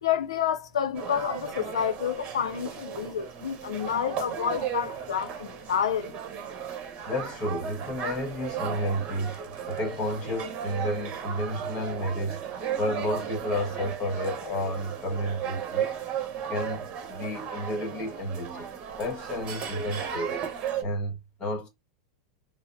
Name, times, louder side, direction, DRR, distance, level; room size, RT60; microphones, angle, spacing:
voice 1, 0.0-6.1, left 8 dB, 90° left, 0.5 m, -29 dB
sound 1, 0.9-20.8, right 8 dB, 35° right, 1.0 m, -35 dB
voice 2, 7.0-9.4 9.7-12.4 12.8-15.9 16.5-18.7 19.0-20.4 20.8-21.7, equal, 30° left, 1.5 m, -31 dB
4.7 x 2.0 x 2.6 m
hypercardioid pair, 115°, 3 cm